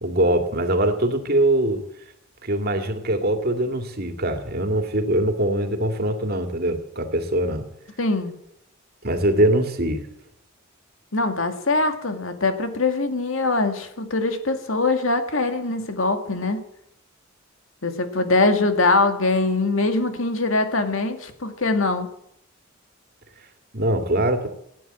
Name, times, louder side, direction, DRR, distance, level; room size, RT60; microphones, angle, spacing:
voice 1, 0.0-1.8 2.4-7.6 9.0-10.0 23.7-24.5, right 1 dB, 50° right, 6 dB, 2.2 m, -22 dB
voice 2, 8.0-8.3 11.1-16.6 17.8-22.1, left 3 dB, 75° left, 7 dB, 2.1 m, -22 dB
16.5 x 9.5 x 8.9 m, 0.74 s
head